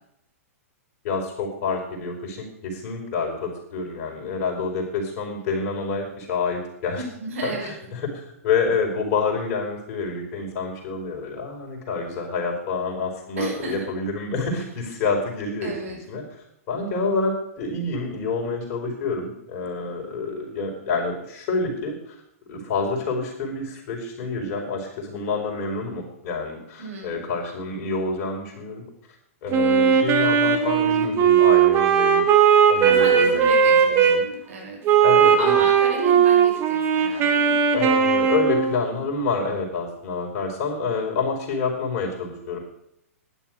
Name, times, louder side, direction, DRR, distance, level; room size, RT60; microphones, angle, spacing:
voice 1, 1.0-7.0 7.4-22.1 22.5-28.8 29.4-32.2 32.7-34.2 35.0-35.6 37.7-42.6, left 4 dB, 40° left, 1 dB, 4.9 m, -28 dB
voice 2, 7.0-7.7 13.4-13.7 15.6-16.0 26.8-27.2 32.8-34.8 35.4-37.6, right 3 dB, 65° right, -1 dB, 6.3 m, -33 dB
Wind instrument woodwind instrument, 29.5-34.2 34.9-38.8, right 7 dB, 30° right, 2.3 m, -18 dB
11.5 x 11.0 x 6.5 m, 0.75 s
figure-of-eight pair, 110°, 8 cm